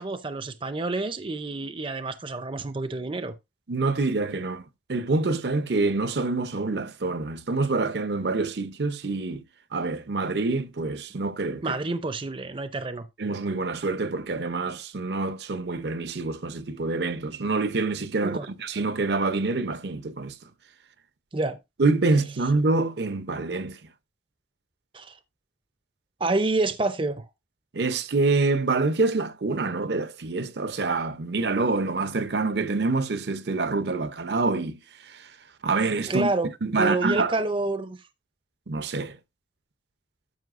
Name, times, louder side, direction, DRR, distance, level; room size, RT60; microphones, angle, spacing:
voice 1, 0.0-3.3 11.6-13.1 18.2-18.5 21.3-21.6 24.9-25.2 26.2-27.3 36.1-36.5 36.8-38.0, right 2 dB, 30° right, 0.6 m, -28 dB
voice 2, 3.7-4.6 4.9-9.4 9.7-11.8 13.2-20.4 21.8-23.8 27.7-35.3 35.6-36.3 36.6-37.3 38.7-39.2, right 3 dB, 65° right, 0.7 m, -26 dB
12.5 x 5.6 x 2.5 m
head